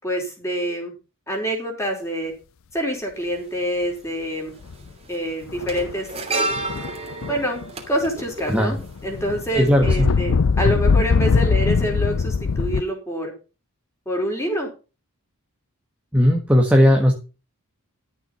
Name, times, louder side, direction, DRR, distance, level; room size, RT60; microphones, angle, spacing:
voice 1, 0.0-0.9 1.3-2.3 2.7-4.5 5.1-6.6 7.3-13.3 14.1-14.7, equal, 15° left, 1 dB, 4.6 m, -26 dB
sound 1, 3.2-3.3 4.5-4.8 5.0-9.3 9.6-9.8, right 2 dB, 25° right, 3.0 m, -30 dB
sound 2, 4.6-4.9 5.5-6.0 6.5-7.7 8.0-12.8, left 5 dB, 65° left, 0.5 m, -21 dB
voice 2, 9.5-10.1 16.1-17.1, equal, 5° right, 1 dB, 1.6 m, -16 dB
13.0 x 7.4 x 5.8 m, 0.32 s
head